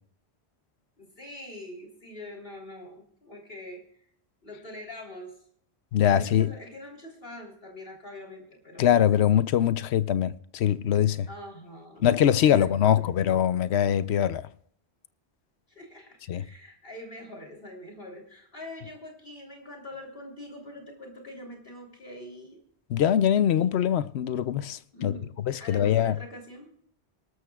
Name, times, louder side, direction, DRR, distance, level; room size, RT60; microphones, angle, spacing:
voice 1, 1.0-3.8 4.4-5.3 6.0-9.0 11.3-12.1 12.5-13.2 15.7-22.6 24.9-25.3 25.6-26.7, left 1 dB, 60° left, 3.6 m, -44 dB
voice 2, 5.9-6.5 8.8-11.3 12.0-14.4 16.3-16.4 22.9-25.1 25.4-26.2, left 10 dB, 75° left, 0.9 m, -23 dB
23.0 x 13.0 x 2.4 m
omnidirectional pair, 1.1 m